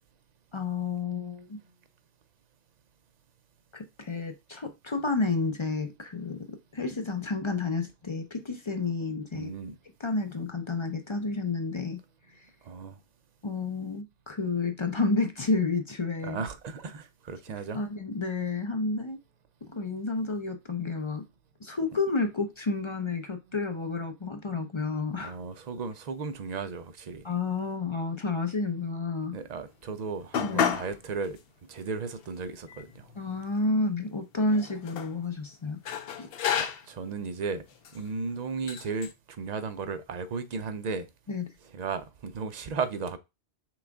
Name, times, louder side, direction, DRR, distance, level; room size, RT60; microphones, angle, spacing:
voice 1, 0.5-1.6 3.7-9.5 10.0-12.0 12.3-12.4 13.4-16.4 17.7-19.2 19.6-21.2 21.6-25.4 27.2-29.4 30.4-30.8 33.2-35.8 36.2-36.3 41.3-41.4, left 3 dB, 35° left, 0.5 m, -30 dB
voice 2, 9.3-9.8 12.7-13.0 16.2-17.8 25.2-27.2 29.3-31.4 31.7-33.1 36.6-37.7 37.9-39.1 39.4-41.1 41.7-43.2, right 4 dB, 50° right, 0.6 m, -35 dB
sound 1, 30.3-31.0 31.3-31.4 32.2-32.3 32.7-33.6 34.5-35.1 35.9-37.0 37.8-38.0 38.7-39.1, left 8 dB, 65° left, 0.8 m, -31 dB
6.0 x 2.4 x 3.5 m
omnidirectional pair, 1.1 m